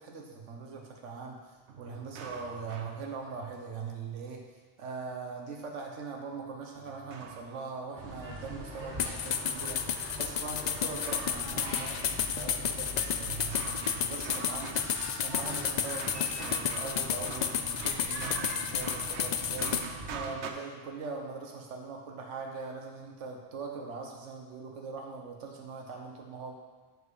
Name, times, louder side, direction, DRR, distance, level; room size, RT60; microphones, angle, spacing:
voice 1, 0.0-1.4 1.8-4.4 4.8-26.6, right 4 dB, 90° right, 1 dB, 1.2 m, -41 dB
sound 1, 1.7-3.6 6.7-9.7 10.3-12.3 12.6-20.5, right 6 dB, 75° right, 1.0 m, -45 dB
sound 2, 8.0-20.2, equal, 45° right, 2.4 m, -43 dB
sound 3, 9.0-19.9, left 8 dB, 60° left, 0.4 m, -32 dB
7.5 x 6.5 x 4.8 m, 1.3 s
omnidirectional pair, 1.2 m